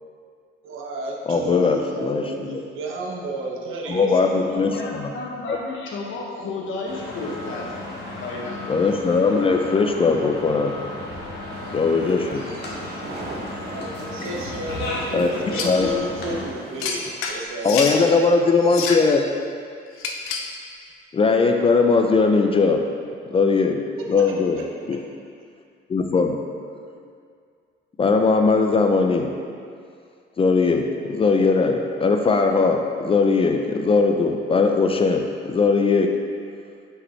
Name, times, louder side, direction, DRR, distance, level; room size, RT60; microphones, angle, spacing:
voice 1, 0.6-5.0 13.7-18.3 24.2-24.3, right 1 dB, 75° right, -1 dB, 0.9 m, -32 dB
voice 2, 1.3-2.2 3.9-5.1 5.5-5.6 8.7-10.7 11.7-12.4 13.5-13.8 15.1-15.3 15.6-15.9 17.6-19.2 21.1-22.8 23.3-23.8 24.1-24.6 24.9-25.0 25.9-26.4 28.0-29.3 30.4-36.1, left 4 dB, 25° left, 4 dB, 0.4 m, -19 dB
voice 3, 4.1-7.6 8.2-8.6, left 3 dB, 70° left, -2 dB, 1.1 m, -32 dB
sound 1, 6.8-16.5, left 2 dB, 55° left, 1.3 m, -34 dB
sound 2, 11.5-17.1, right 2 dB, 50° right, 0.9 m, -39 dB
sound 3, 15.5-15.8 16.8-18.0 18.6-19.1 20.0-20.5, left 5 dB, 90° left, 0.6 m, -28 dB
5.9 x 5.1 x 3.2 m, 2.2 s
cardioid pair, 115°, 21 cm